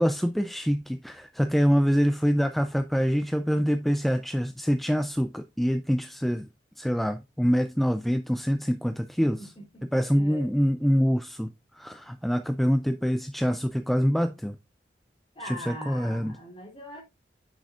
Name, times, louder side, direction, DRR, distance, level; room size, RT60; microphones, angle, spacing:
voice 1, 0.0-6.5 6.8-9.5 9.9-14.6 15.4-16.3, equal, ahead, 0.3 m, -25 dB
voice 2, 9.2-10.5 15.3-17.0, equal, 30° left, 3.2 m, -42 dB
9.4 x 6.5 x 2.4 m
head